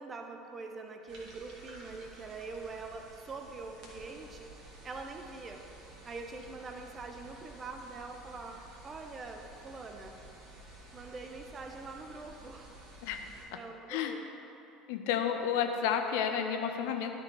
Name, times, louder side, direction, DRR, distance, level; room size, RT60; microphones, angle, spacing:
voice 1, 0.0-4.5 4.8-5.6 6.0-10.2 10.9-12.8 13.5-14.2, right 3 dB, 30° right, 4 dB, 0.8 m, -44 dB
sound 1, 1.1-13.4, right 2 dB, 45° right, 1.8 m, -52 dB
voice 2, 14.9-17.1, left 8 dB, 60° left, 5 dB, 0.6 m, -31 dB
11.5 x 4.5 x 4.7 m, 2.8 s
figure-of-eight pair, 65°, 0 cm